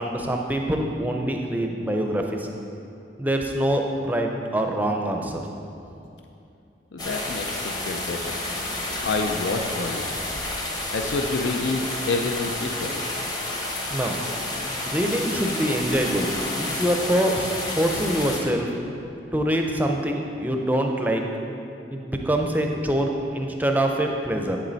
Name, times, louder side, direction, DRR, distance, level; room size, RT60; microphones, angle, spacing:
voice 1, 0.0-2.2 3.2-5.4 13.9-14.2 14.9-16.3 16.6-18.7 19.3-21.2 21.9-24.6, right 1 dB, 10° right, 2 dB, 0.5 m, -24 dB
voice 2, 6.9-7.6 7.9-8.3 9.0-10.0 10.9-13.0, left 3 dB, 75° left, 3 dB, 0.5 m, -27 dB
sound 1, 7.0-18.4, left 2 dB, 20° left, 0.9 m, -30 dB
8.5 x 7.4 x 4.0 m, 2.7 s
head